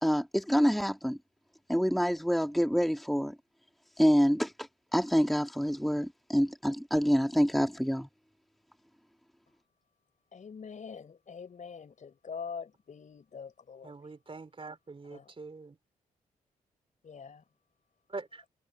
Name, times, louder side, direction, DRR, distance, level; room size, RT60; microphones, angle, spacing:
voice 1, 0.0-1.2 1.7-3.4 4.0-8.1, equal, ahead, 1.9 m, -27 dB
voice 2, 10.3-14.1 15.1-15.3 17.0-17.4, left 6 dB, 55° left, 4.6 m, -44 dB
voice 3, 13.8-15.8 18.1-18.4, right 3 dB, 35° right, 3.1 m, -43 dB
supercardioid pair, 50°, 16 cm